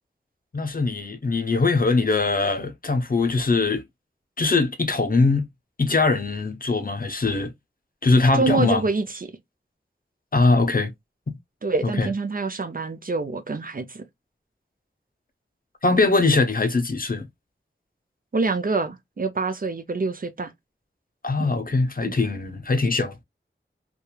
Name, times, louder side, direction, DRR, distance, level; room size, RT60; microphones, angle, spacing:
voice 1, 0.5-3.8 4.4-5.5 5.8-7.5 8.0-8.8 10.3-10.9 11.3-11.4 11.8-12.1 15.8-17.3 21.2-23.2, left 3 dB, 45° left, 0.6 m, -21 dB
voice 2, 8.3-9.3 11.6-14.0 18.3-20.5 21.4-21.6 22.1-22.2, right 3 dB, 45° right, 0.5 m, -26 dB
2.9 x 2.3 x 2.3 m
wide cardioid pair, 40°, 20 cm